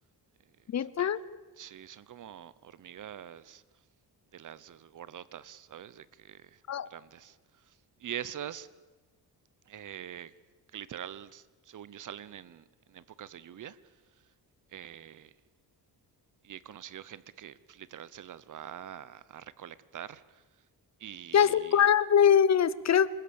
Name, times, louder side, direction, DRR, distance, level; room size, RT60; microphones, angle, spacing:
voice 1, 0.7-1.2 6.7-6.9 21.3-23.1, left 8 dB, 45° left, 0.8 m, -23 dB
voice 2, 1.6-3.6 4.3-6.6 6.9-8.7 9.7-10.3 10.7-13.8 14.7-15.3 16.4-20.4 21.0-21.9, right 10 dB, 50° right, 1.0 m, -44 dB
27.0 x 21.0 x 7.1 m
cardioid pair, 140°, 39 cm